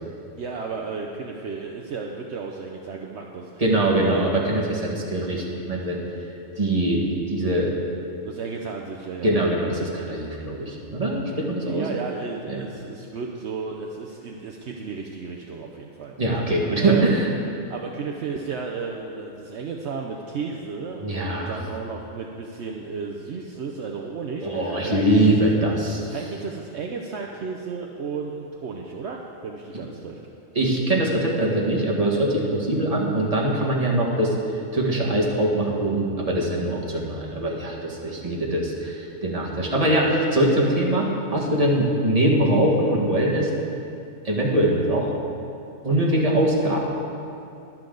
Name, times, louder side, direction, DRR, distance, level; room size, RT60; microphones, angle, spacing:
voice 1, 0.4-4.3 8.2-9.3 11.6-17.1 17.7-25.3 26.1-30.2, right 5 dB, 65° right, 1 dB, 1.0 m, -33 dB
voice 2, 3.6-6.0 6.6-7.7 9.2-11.9 12.5-12.6 16.2-17.3 21.0-21.5 24.4-26.1 30.6-34.3 34.7-43.5 44.2-45.1 45.8-46.8, right 1 dB, 30° right, -3 dB, 1.8 m, -22 dB
22.5 x 7.6 x 3.9 m, 2.7 s
omnidirectional pair, 1.3 m